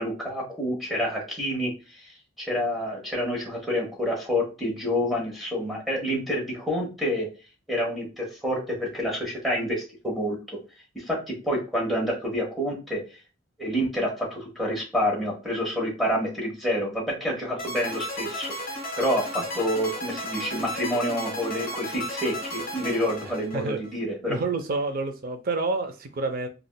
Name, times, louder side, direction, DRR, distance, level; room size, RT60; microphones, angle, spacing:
voice 1, 0.0-2.1 2.4-7.3 7.7-10.6 10.9-13.0 13.6-18.5 19.0-24.4, equal, ahead, 1.0 m, -28 dB
sound 1, 17.6-23.9, equal, 45° left, 1.3 m, -34 dB
voice 2, 24.3-26.5, right 3 dB, 45° right, 0.5 m, -28 dB
3.4 x 2.4 x 2.2 m
head